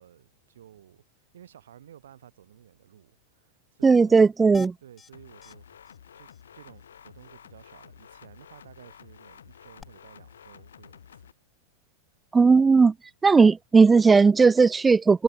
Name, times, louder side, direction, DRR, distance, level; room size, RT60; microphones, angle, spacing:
voice 1, 0.0-4.3 4.8-11.3, right 10 dB, 80° right, 6.5 m, -53 dB
voice 2, 3.8-4.7 12.3-12.9 13.2-15.2, right 4 dB, 15° right, 0.3 m, -17 dB
sound 1, 4.5-5.1 5.4-5.5 5.9-6.0 6.3-6.4 9.8-9.9, left 6 dB, 20° left, 1.0 m, -44 dB
sound 2, 5.1-11.3, left 8 dB, 85° left, 2.0 m, -51 dB
hypercardioid pair, 100°, 0 cm